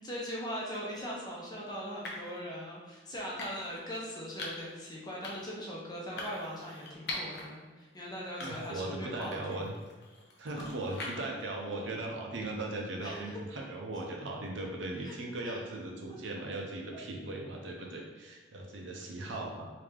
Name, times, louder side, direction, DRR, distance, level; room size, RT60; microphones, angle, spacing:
voice 1, 0.0-9.7 13.0-13.4 15.0-15.2 15.4-15.6 16.1-16.2 19.0-19.1, equal, 20° left, -4 dB, 0.7 m, -40 dB
sound 1, 0.7-1.0 2.0-2.4 3.4-3.8 4.4-4.7 5.2-5.6 6.2-7.4 7.9-8.0 8.4-8.9 9.2-11.4, left 2 dB, 60° left, 0.7 m, -42 dB
voice 2, 8.4-9.7 10.4-19.7, right 2 dB, 80° right, 0 dB, 0.6 m, -38 dB
3.3 x 2.8 x 3.6 m, 1.3 s
head